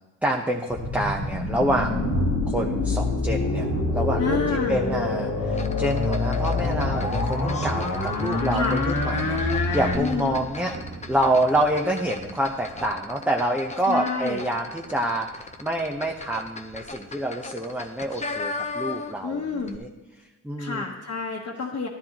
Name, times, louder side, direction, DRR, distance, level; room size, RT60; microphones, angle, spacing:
voice 1, 0.2-2.1 2.5-3.7 3.9-10.7 11.1-19.9 20.4-20.9, right 1 dB, 5° right, 0 dB, 0.8 m, -27 dB
sound 1, 0.7-9.9, left 3 dB, 90° left, 1.5 m, -26 dB
Thunder, 1.3-17.4 18.2-18.3 18.8-19.3, right 2 dB, 45° right, 1.4 m, -37 dB
voice 2, 4.2-4.9 8.5-8.8 10.0-10.4 13.8-14.4 19.2-19.7 20.6-21.9, left 4 dB, 50° left, -3 dB, 1.3 m, -29 dB
sound 2, 5.5-19.3 19.6-19.8, left 3 dB, 20° left, 0.8 m, -37 dB
12.5 x 12.5 x 3.0 m, 1.2 s
cardioid pair, 95°, 32 cm